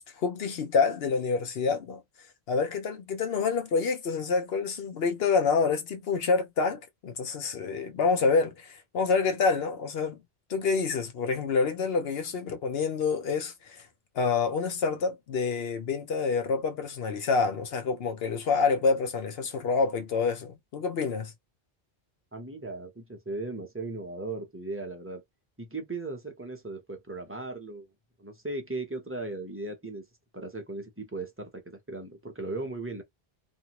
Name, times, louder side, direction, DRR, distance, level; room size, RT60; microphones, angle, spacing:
voice 1, 0.2-2.0 2.5-10.2 10.5-13.8 14.1-21.3, left 4 dB, 75° left, 0.9 m, -27 dB
voice 2, 22.3-25.2 25.6-27.9 28.2-30.0 30.3-33.0, right 2 dB, 15° right, 0.6 m, -37 dB
2.7 x 2.5 x 2.9 m
omnidirectional pair, 1.0 m